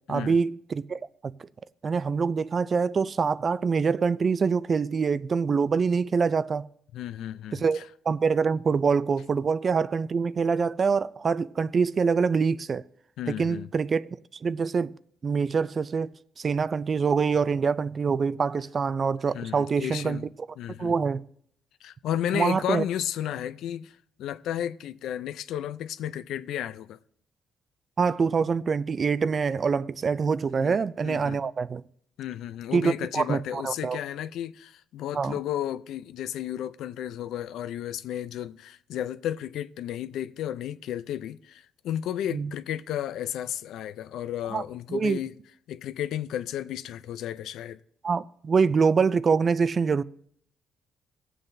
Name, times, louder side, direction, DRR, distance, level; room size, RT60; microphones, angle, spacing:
voice 1, 0.1-1.3 1.8-6.7 7.5-12.8 13.3-14.1 14.4-15.0 15.2-16.1 16.4-20.2 20.8-21.2 22.3-22.8 28.0-31.8 32.7-34.0 35.1-35.4 42.3-42.5 44.5-44.6 44.9-45.2 48.0-50.0, right 5 dB, 40° right, 0.3 m, -25 dB
voice 2, 6.9-7.9 13.2-13.7 19.3-20.3 20.6-20.9 21.8-27.0 30.6-30.8 31.0-31.4 32.2-45.3 45.7-47.8, left 11 dB, 80° left, 0.4 m, -33 dB
19.0 x 7.6 x 2.6 m
cardioid pair, 90°, 0 cm